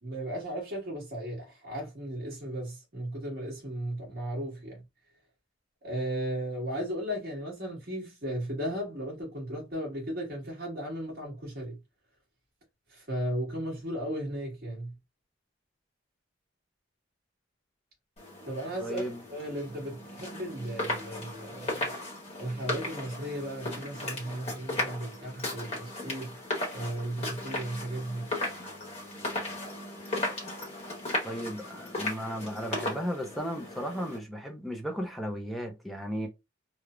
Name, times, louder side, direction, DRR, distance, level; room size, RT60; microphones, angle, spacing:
voice 1, 0.0-4.8 5.8-11.8 12.9-14.9 18.4-19.0 19.3-21.9 22.4-26.4 26.7-28.3, right 1 dB, 50° right, 1.4 m, -35 dB
sound 1, 18.2-34.2, left 2 dB, 35° left, 0.9 m, -36 dB
voice 2, 18.8-19.2 31.2-36.3, equal, ahead, 0.4 m, -35 dB
3.1 x 2.0 x 2.3 m
head